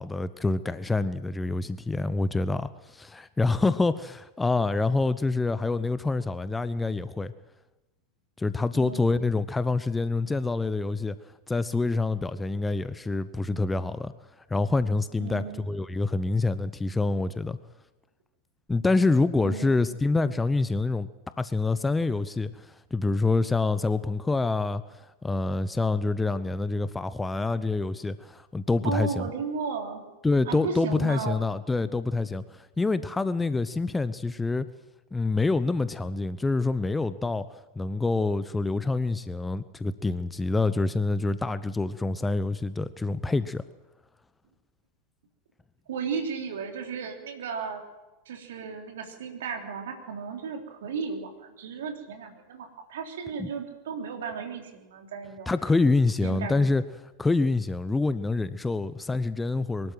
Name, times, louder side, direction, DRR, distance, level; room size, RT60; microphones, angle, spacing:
voice 1, 0.0-7.3 8.4-11.2 11.5-14.1 14.5-17.6 18.7-21.1 21.4-29.3 30.2-34.7 35.1-43.6 53.4-53.5 55.5-56.8 57.2-59.9, left 3 dB, 10° left, 14 dB, 0.8 m, -26 dB
voice 2, 8.7-9.2 15.2-15.6 19.4-19.9 28.8-30.0 30.5-31.4 45.9-47.8 48.3-55.5 56.2-56.7, right 5 dB, 60° right, 3 dB, 3.4 m, -34 dB
23.5 x 12.5 x 9.2 m, 1.1 s
figure-of-eight pair, 90°, 0 cm